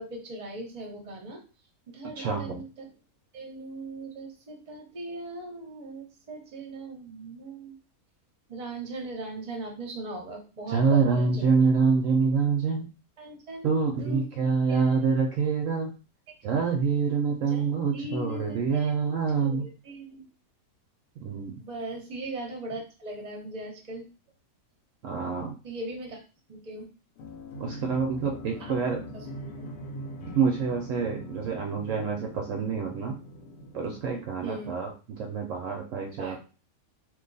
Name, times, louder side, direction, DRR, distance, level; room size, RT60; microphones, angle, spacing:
voice 1, 0.0-1.4 1.9-2.9 3.3-7.8 8.5-11.4 13.2-13.7 14.0-15.1 17.4-17.7 17.9-20.3 21.6-24.1 25.6-26.2 26.5-26.9 28.6-28.7 29.1-29.7 34.4-34.7 36.2-36.4, right 2 dB, 30° right, 0 dB, 0.9 m, -39 dB
voice 2, 2.2-2.6 10.7-12.9 13.6-15.9 16.4-19.7 21.2-21.5 25.0-25.6 27.6-29.0 30.2-33.2 33.7-34.9 35.2-36.4, right 5 dB, 65° right, 1 dB, 0.9 m, -26 dB
sound 1, 27.2-34.7, left 1 dB, 85° left, 1.1 m, -42 dB
2.8 x 2.2 x 3.9 m, 0.33 s
omnidirectional pair, 1.5 m